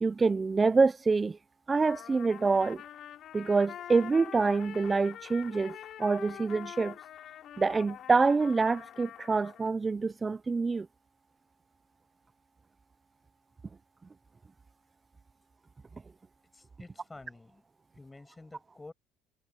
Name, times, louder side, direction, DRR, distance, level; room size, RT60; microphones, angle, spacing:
voice 1, 0.0-1.4 1.7-2.8 3.3-7.0 7.6-10.9, right 4 dB, 20° right, 0.5 m, -26 dB
Trumpet, 1.8-9.7, left 11 dB, 55° left, 4.4 m, -45 dB
voice 2, 16.5-17.7 17.9-18.9, left 2 dB, 15° left, 7.8 m, -50 dB
cardioid pair, 110°, 0 cm